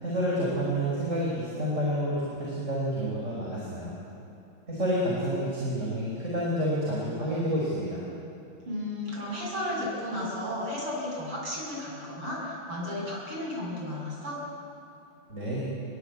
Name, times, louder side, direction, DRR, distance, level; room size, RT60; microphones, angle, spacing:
voice 1, 0.0-3.9 4.7-8.0 15.3-15.7, equal, 35° right, -5 dB, 5.5 m, -29 dB
voice 2, 8.7-14.4, left 1 dB, 85° right, -3 dB, 8.1 m, -33 dB
28.0 x 22.0 x 8.2 m, 2.8 s
omnidirectional pair, 2.4 m